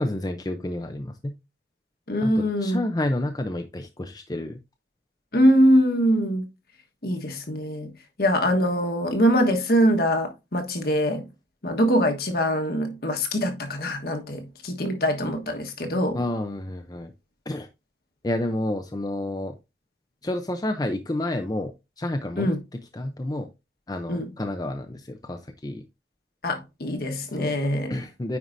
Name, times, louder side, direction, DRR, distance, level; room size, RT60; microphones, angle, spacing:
voice 1, 0.0-1.3 2.2-4.6 16.1-17.1 17.5-17.7 18.2-19.6 20.2-21.7 22.0-22.6 22.9-23.5 23.9-25.8 27.3-27.6 27.9-28.4, left 1 dB, 20° left, 0.6 m, -29 dB
voice 2, 2.1-2.8 5.3-6.4 7.0-7.9 8.2-11.3 11.6-16.2 22.4-22.6 24.1-24.3 26.4-27.9, equal, 55° left, 1.3 m, -23 dB
9.4 x 4.7 x 2.6 m
head